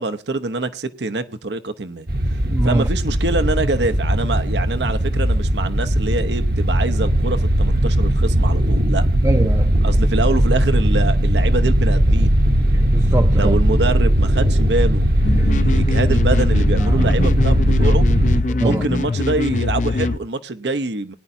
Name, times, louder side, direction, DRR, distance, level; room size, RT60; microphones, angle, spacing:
voice 1, 0.0-2.1 2.6-9.0 9.8-12.4 13.3-18.1 18.6-21.1, right 3 dB, 80° right, 0.9 m, -25 dB
sound 1, 2.1-18.4, equal, 55° right, 1.0 m, -18 dB
voice 2, 2.5-2.9 9.2-9.7 12.7-13.6 15.4-15.5 16.9-17.0 18.6-18.8, right 2 dB, 20° right, 0.5 m, -22 dB
sound 2, 15.2-20.2, left 2 dB, 45° left, 0.5 m, -22 dB
20.5 x 10.0 x 2.8 m
head